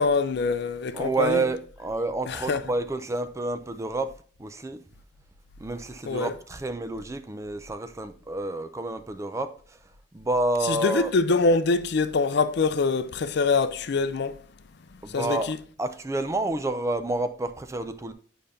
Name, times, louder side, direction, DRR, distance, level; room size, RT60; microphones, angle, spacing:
voice 1, 0.0-1.4 2.3-2.6 6.1-6.3 10.7-14.4 15.1-15.6, left 4 dB, 60° left, 0.5 m, -24 dB
voice 2, 0.9-4.8 5.6-9.8 10.1-11.1 15.0-15.5 15.8-18.1, right 2 dB, 15° right, 0.4 m, -29 dB
8.8 x 5.0 x 2.7 m
head